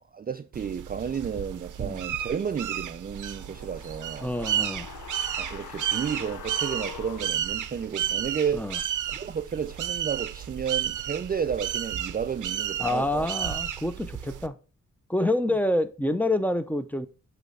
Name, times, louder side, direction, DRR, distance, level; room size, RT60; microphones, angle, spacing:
voice 1, 0.0-4.3 5.4-8.7 9.1-13.3, right 7 dB, 30° right, 0.4 m, -32 dB
sound 1, 0.5-14.5, right 10 dB, 70° right, 0.6 m, -32 dB
sound 2, 3.1-8.2 8.5-8.6, left 10 dB, 80° left, 0.6 m, -44 dB
voice 2, 4.2-4.9 8.5-8.8 12.8-14.5 15.1-17.1, left 1 dB, 5° left, 0.6 m, -27 dB
8.0 x 3.3 x 4.0 m
cardioid pair, 60°, 32 cm